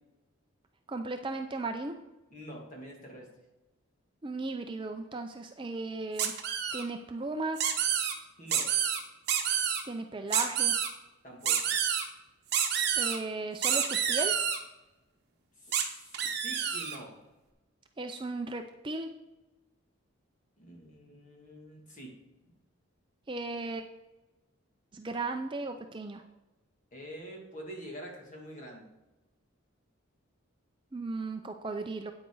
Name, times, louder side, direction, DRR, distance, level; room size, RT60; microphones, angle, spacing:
voice 1, 0.9-1.9 4.2-6.3 6.7-7.7 9.9-10.7 13.0-14.3 18.0-19.1 23.3-23.8 24.9-26.2 30.9-32.1, right 3 dB, 25° right, 5 dB, 0.4 m, -36 dB
voice 2, 2.3-3.3 8.4-8.7 11.2-11.6 15.6-17.2 20.6-22.1 26.9-28.9, equal, 35° left, -1 dB, 2.2 m, -46 dB
sound 1, 6.2-6.8 7.6-8.1 8.5-9.0 9.3-9.8 10.3-10.9 11.5-12.0 12.5-13.2 13.6-14.6 15.7-15.8 16.1-17.0, right 8 dB, 50° right, 1.0 m, -28 dB
8.9 x 8.9 x 3.9 m, 1.0 s
head